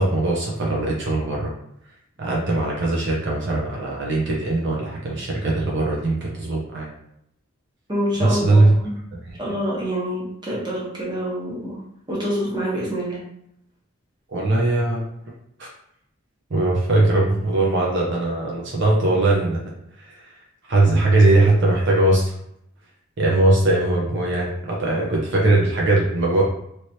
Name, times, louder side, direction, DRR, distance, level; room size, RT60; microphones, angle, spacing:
voice 1, 0.0-1.5 2.2-6.9 8.2-8.7 14.3-15.0 15.6-15.7 16.5-19.6 20.0-20.3 20.7-22.3 23.2-26.4, right 2 dB, 60° right, -3 dB, 0.7 m, -20 dB
voice 2, 7.9-9.0 9.4-11.8 12.1-13.2, equal, 20° right, -5 dB, 1.1 m, -26 dB
3.1 x 3.0 x 2.7 m, 0.73 s
head